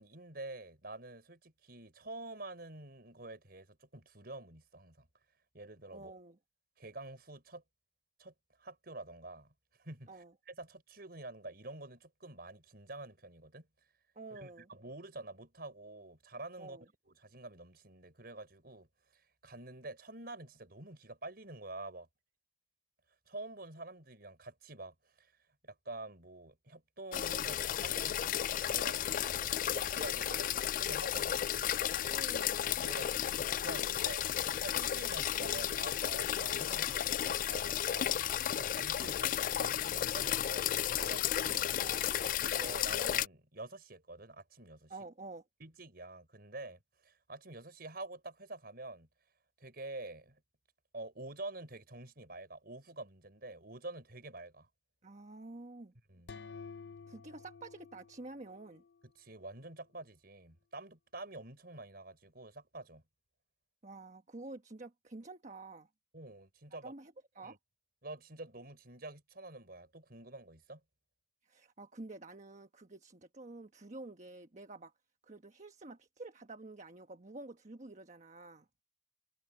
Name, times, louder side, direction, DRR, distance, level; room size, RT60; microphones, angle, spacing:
voice 1, 0.0-5.1 5.5-6.1 6.8-7.6 8.2-8.3 8.6-9.5 9.8-13.7 14.3-18.9 19.1-22.1 23.3-25.3 25.6-31.4 32.8-34.3 34.6-41.7 42.4-44.9 45.6-49.1 49.6-50.4 50.9-54.7 56.1-56.3 59.2-63.0 66.1-66.9 67.4-67.6 68.0-70.8, right 2 dB, 60° right, 5.5 m, -48 dB
voice 2, 5.9-6.4 10.1-10.3 14.1-14.7 16.6-16.8 32.1-32.6 41.5-42.2 44.9-45.4 55.0-55.9 57.1-58.8 63.8-65.9 66.8-67.6 71.4-74.9 75.2-78.7, right 2 dB, 40° right, 1.2 m, -49 dB
sound 1, 27.1-43.3, left 10 dB, 50° left, 0.3 m, -33 dB
sound 2, 56.3-59.0, left 5 dB, 70° left, 0.8 m, -51 dB
head